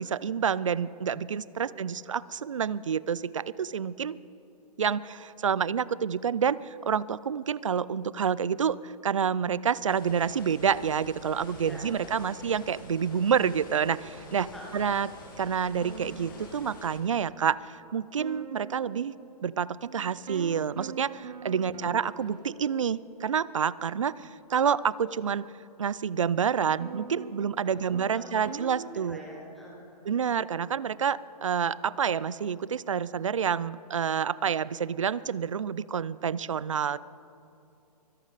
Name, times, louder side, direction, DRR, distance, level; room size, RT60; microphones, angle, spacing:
voice 1, 0.0-4.2 4.8-15.1 15.4-19.1 19.4-25.5 25.8-29.2 30.1-37.0, right 7 dB, 50° right, 20 dB, 0.4 m, -28 dB
sound 1, 9.9-17.0, left 2 dB, 30° left, 2.2 m, -47 dB
sound 2, 15.8-17.1 17.7-17.9 18.2-23.7 24.2-24.3 26.4-29.9, right 5 dB, 90° right, 1.2 m, -44 dB
voice 2, 28.4-28.7 29.1-30.0, equal, ahead, -5 dB, 0.5 m, -46 dB
24.0 x 11.5 x 4.1 m, 2.8 s
hypercardioid pair, 180°, 20 cm